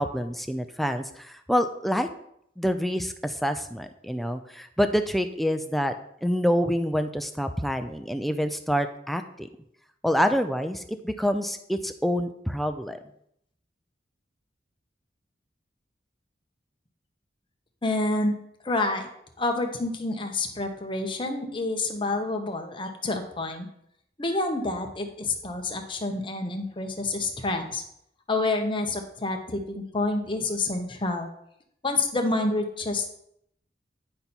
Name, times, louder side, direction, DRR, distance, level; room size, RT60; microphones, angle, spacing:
voice 1, 0.0-2.1 2.6-5.9 6.2-9.5 10.0-13.0, equal, ahead, 7 dB, 0.5 m, -27 dB
voice 2, 17.8-18.4 18.6-19.1 19.4-23.7 24.2-27.8 28.3-31.3 31.8-33.1, left 2 dB, 25° left, 4 dB, 1.0 m, -28 dB
10.0 x 5.4 x 4.4 m, 0.73 s
head